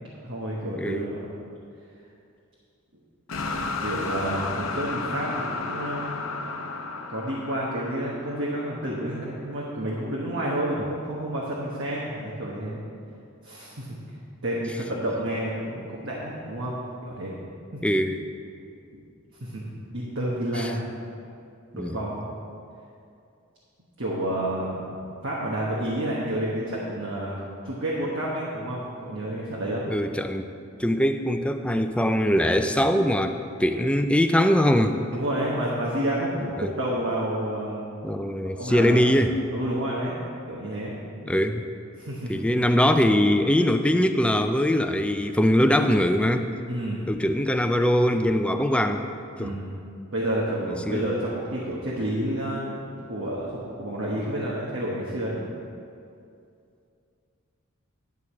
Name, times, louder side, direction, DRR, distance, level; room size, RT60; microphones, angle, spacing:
voice 1, 0.2-1.3 3.8-6.2 7.1-12.8 13.4-14.1 14.4-16.8 17.1-17.4 18.9-19.0 19.4-20.9 21.7-22.3 24.0-24.9 25.2-29.9 35.1-37.8 38.4-39.0 39.5-40.1 40.5-40.9 42.0-42.6 46.7-47.1 49.4-49.8 50.1-55.5, right 1 dB, 60° right, -5 dB, 1.3 m, -30 dB
voice 2, 0.8-1.1 17.8-18.2 20.6-20.7 21.7-22.0 29.9-30.5 30.8-34.9 36.6-36.7 38.0-39.4 41.3-41.6 42.3-46.5 47.1-49.0 49.4-49.5 50.9-51.0 51.7-51.8, equal, 5° left, 7 dB, 0.4 m, -22 dB
sound 1, 3.3-9.3, left 3 dB, 75° left, 0.7 m, -33 dB
10.5 x 4.9 x 7.2 m, 2.5 s
head